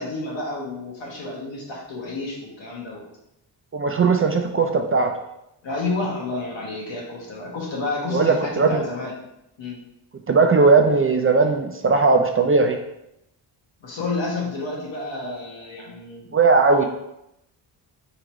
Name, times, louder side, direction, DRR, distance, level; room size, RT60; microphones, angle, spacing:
voice 1, 0.0-3.0 4.3-4.5 5.6-9.1 9.6-9.8 13.8-16.3 16.8-16.9, left 3 dB, 75° left, -3 dB, 1.6 m, -30 dB
voice 2, 3.7-5.1 8.1-8.8 10.3-12.8 16.3-16.9, right 4 dB, 30° right, 4 dB, 0.3 m, -18 dB
3.8 x 2.9 x 4.7 m, 0.84 s
cardioid pair, 95°, 45 cm